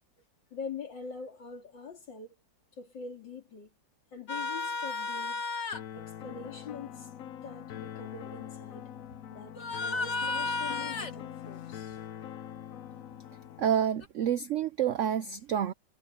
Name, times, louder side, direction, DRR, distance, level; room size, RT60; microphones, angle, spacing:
voice 1, 0.5-2.4 2.8-3.7 4.1-5.4 5.9-7.1 7.4-8.9 9.3-12.0, left 5 dB, 80° left, 3.8 m, -43 dB
sound 1, 4.3-5.8 9.6-11.2 14.0-14.1, left 3 dB, 40° left, 2.1 m, -33 dB
sound 2, 5.7-13.7, left 10 dB, 60° left, 0.9 m, -43 dB
voice 2, 13.6-15.7, right 9 dB, 90° right, 0.6 m, -28 dB
omnidirectional pair, 2.0 m